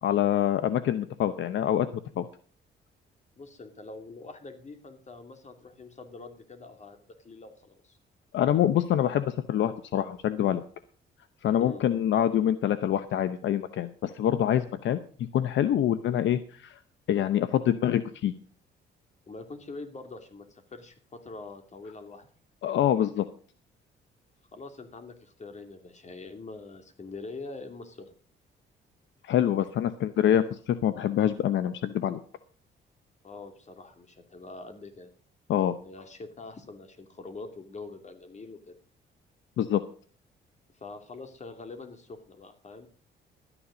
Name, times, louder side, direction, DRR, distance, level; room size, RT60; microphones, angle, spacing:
voice 1, 0.0-1.9 2.2-2.3 8.3-10.6 11.4-16.8 17.1-18.3 22.6-23.3 29.2-32.2 35.5-35.7 39.6-39.8, left 10 dB, 70° left, 12 dB, 0.8 m, -25 dB
voice 2, 3.4-8.0 11.6-11.9 19.3-22.3 24.5-28.1 33.2-35.1 35.8-38.8 40.7-42.9, left 3 dB, 35° left, 7 dB, 2.7 m, -44 dB
13.0 x 10.0 x 5.1 m, 0.42 s
cardioid pair, 90°, 20 cm